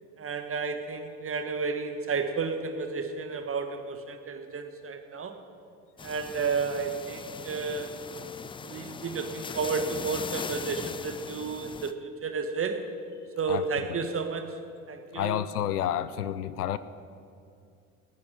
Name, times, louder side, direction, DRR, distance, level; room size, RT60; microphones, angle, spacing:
voice 1, 0.2-5.4 6.0-8.0 8.6-12.8 13.4-14.6 14.9-15.4, right 4 dB, 30° right, 6 dB, 1.6 m, -32 dB
sound 1, 6.0-11.9, left 5 dB, 10° left, 0.4 m, -40 dB
voice 2, 15.1-16.8, left 11 dB, 80° left, 15 dB, 0.6 m, -29 dB
13.0 x 9.4 x 7.7 m, 2.5 s
figure-of-eight pair, 60°, 45 cm